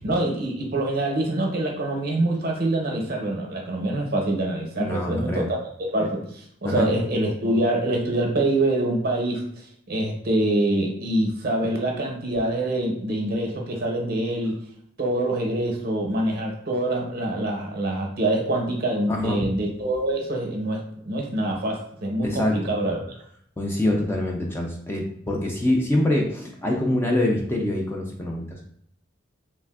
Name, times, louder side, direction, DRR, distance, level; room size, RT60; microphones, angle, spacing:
voice 1, 0.0-5.6 5.9-14.6 15.0-23.0, right 1 dB, 50° right, 0 dB, 0.7 m, -25 dB
voice 2, 4.8-5.5 6.6-6.9 19.1-19.4 22.2-22.7 23.6-28.6, left 1 dB, 10° left, -1 dB, 0.3 m, -25 dB
3.2 x 2.5 x 2.3 m, 0.67 s
head